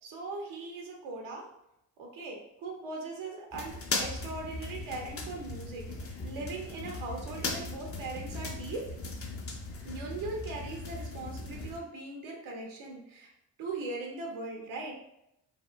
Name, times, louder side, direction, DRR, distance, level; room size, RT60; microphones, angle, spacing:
voice 1, 0.0-1.5 2.0-8.9 9.8-13.3 13.6-14.9, right 3 dB, 75° right, 0 dB, 0.7 m, -40 dB
sound 1, 3.5-11.8, left 3 dB, 30° left, 0.6 m, -38 dB
3.5 x 2.0 x 2.3 m, 0.82 s
hypercardioid pair, 40°, 48 cm